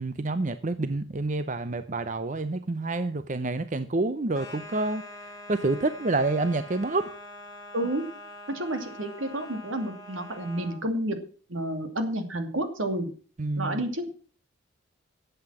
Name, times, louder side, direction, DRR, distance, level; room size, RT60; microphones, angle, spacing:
voice 1, 0.0-5.0 5.5-7.1 13.4-13.8, right 2 dB, 40° right, 12 dB, 0.6 m, -28 dB
sound 1, 4.3-10.8, left 1 dB, 20° left, 3.0 m, -44 dB
voice 2, 8.5-11.2 11.5-13.1 13.6-14.1, right 1 dB, 80° right, 7 dB, 2.6 m, -30 dB
11.5 x 8.0 x 7.6 m, 0.41 s
head